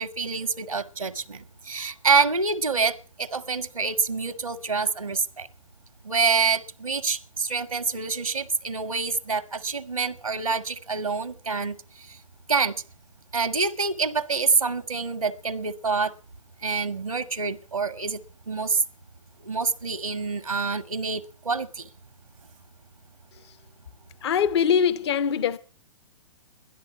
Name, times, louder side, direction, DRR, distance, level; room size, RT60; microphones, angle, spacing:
voice 1, 0.0-5.5 6.0-12.2 12.5-12.8 13.3-16.1 16.6-18.2 18.5-18.8 19.4-21.9, right 4 dB, 85° right, 0.8 m, -26 dB
voice 2, 24.2-25.6, left 7 dB, 50° left, 0.8 m, -22 dB
13.0 x 11.0 x 6.9 m
figure-of-eight pair, 115°, 18 cm